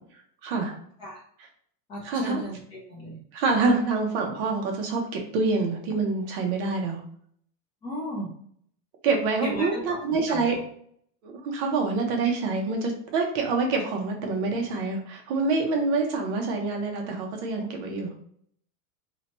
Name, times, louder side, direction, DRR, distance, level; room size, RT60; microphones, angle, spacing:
voice 1, 0.4-0.8 2.0-2.4 3.3-7.0 9.0-10.6 11.2-18.1, right 3 dB, 50° right, 2 dB, 0.7 m, -26 dB
voice 2, 1.9-3.2 7.8-8.3 9.4-10.0 10.3-10.6, equal, 10° left, -6 dB, 0.3 m, -35 dB
2.7 x 2.1 x 3.0 m, 0.64 s
supercardioid pair, 170°, 46 cm